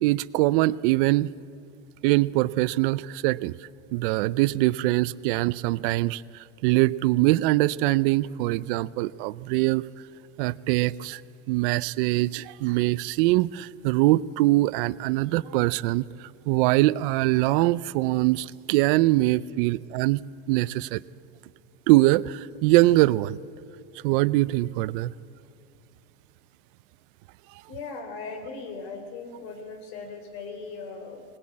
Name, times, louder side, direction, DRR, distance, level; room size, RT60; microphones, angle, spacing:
voice 1, 0.0-1.3 2.0-3.5 3.9-6.2 6.6-9.8 10.4-11.2 11.5-16.1 16.5-20.2 20.5-21.0 21.9-23.4 24.0-25.1, right 18 dB, 60° right, 19 dB, 0.6 m, -23 dB
voice 2, 27.7-31.2, left 4 dB, 55° left, 5 dB, 3.7 m, -38 dB
20.5 x 19.5 x 8.6 m, 2.6 s
supercardioid pair, 165°, 30 cm